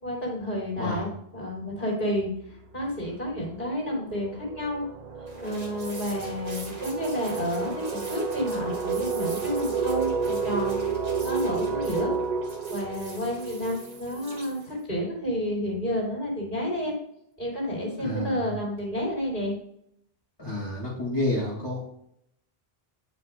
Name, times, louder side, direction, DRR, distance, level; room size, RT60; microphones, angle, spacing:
voice 1, 0.0-4.8 5.4-10.8 11.2-12.1 12.7-16.9 17.4-19.6, equal, 55° left, -5 dB, 3.2 m, -30 dB
voice 2, 0.8-1.1 18.0-18.5 20.4-21.8, left 1 dB, 25° left, -8 dB, 2.7 m, -30 dB
sound 1, 2.3-2.6 2.9-14.5, right 5 dB, 45° right, 0.8 m, -31 dB
sound 2, 5.3-14.8, right 2 dB, 80° right, 2.3 m, -45 dB
9.7 x 5.7 x 2.6 m, 0.74 s
omnidirectional pair, 1.0 m